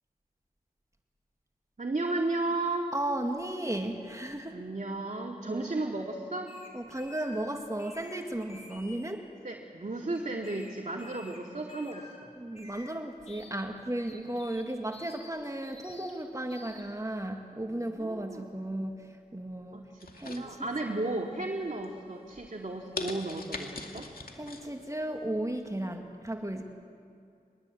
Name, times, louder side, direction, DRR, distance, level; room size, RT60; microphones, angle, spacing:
voice 1, 1.8-2.9 4.5-6.5 9.4-12.3 17.7-18.5 19.7-20.0 20.4-24.1, right 2 dB, 50° right, -1 dB, 2.6 m, -34 dB
voice 2, 2.9-4.6 5.4-5.7 6.7-9.3 12.4-19.0 19.3-19.8 20.2-20.6 24.4-26.6, right 1 dB, 20° right, 3 dB, 2.1 m, -35 dB
sound 1, 6.5-7.5 7.8-9.1 10.2-10.7 11.0-11.4 11.7-12.2 12.5-12.9 13.3-13.5 14.1-14.6 14.9-15.3 15.6-16.1 16.5-16.8, left 2 dB, 45° left, 4.8 m, -51 dB
sound 2, 20.0-21.0 21.5-21.9 22.3-22.4 23.0-24.6 25.0-25.1, left 3 dB, 75° left, 2.4 m, -39 dB
22.5 x 21.0 x 8.4 m, 2.4 s
cardioid pair, 40°, 15 cm